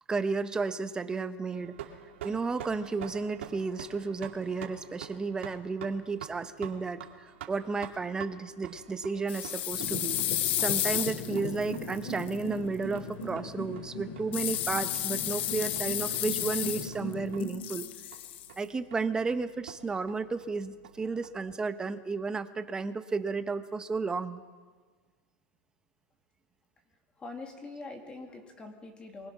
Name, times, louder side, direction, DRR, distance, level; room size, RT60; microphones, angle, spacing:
voice 1, 0.1-1.8 2.2-7.0 7.5-10.2 10.6-17.9 18.6-24.4, right 4 dB, 10° right, 11 dB, 0.9 m, -33 dB
sound 1, 1.5-21.3, right 9 dB, 85° right, 2.4 m, -48 dB
sound 2, 9.3-12.3 14.3-17.1 17.4-18.5, left 13 dB, 75° left, 1.1 m, -32 dB
sound 3, 9.7-17.5, left 2 dB, 50° left, 3.6 m, -39 dB
voice 2, 27.2-29.3, left 3 dB, 15° left, 3 dB, 2.6 m, -44 dB
23.5 x 20.0 x 6.0 m, 1.5 s
supercardioid pair, 150°, 6 cm